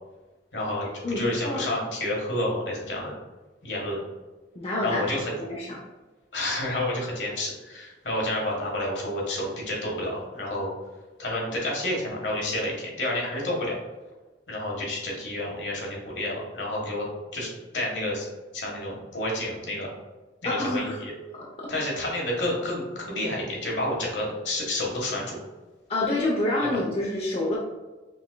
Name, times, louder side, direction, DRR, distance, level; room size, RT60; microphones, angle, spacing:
voice 1, 0.5-3.1 3.6-4.0 4.8-5.3 6.3-10.7 11.2-13.7 14.5-17.0 17.3-18.3 18.5-19.9 20.4-21.1 21.7-25.4 26.7-26.8, left 1 dB, 75° left, -3 dB, 1.4 m, -30 dB
voice 2, 1.0-1.7 4.5-5.1 5.4-5.8 20.4-21.0 21.3-21.7 25.9-27.6, left 2 dB, 35° left, -3 dB, 0.6 m, -27 dB
5.3 x 3.5 x 2.2 m, 1.2 s
head